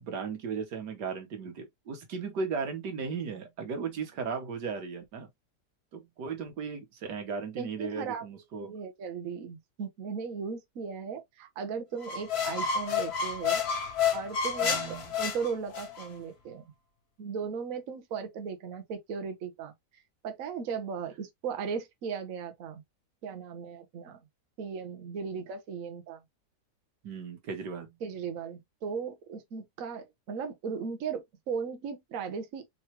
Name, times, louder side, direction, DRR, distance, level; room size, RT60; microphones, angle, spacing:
voice 1, 0.0-5.3 5.9-8.7 14.6-15.1 27.0-28.0, right 5 dB, 85° right, 1.8 m, -36 dB
voice 2, 7.6-8.2 8.6-13.6 14.1-16.7 17.2-19.7 20.2-22.8 23.2-24.2 24.6-26.2 28.0-32.7, right 6 dB, 60° right, 1.2 m, -37 dB
sound 1, 12.0-16.1, left 6 dB, 45° left, 1.1 m, -30 dB
4.6 x 3.1 x 3.0 m
omnidirectional pair, 1.8 m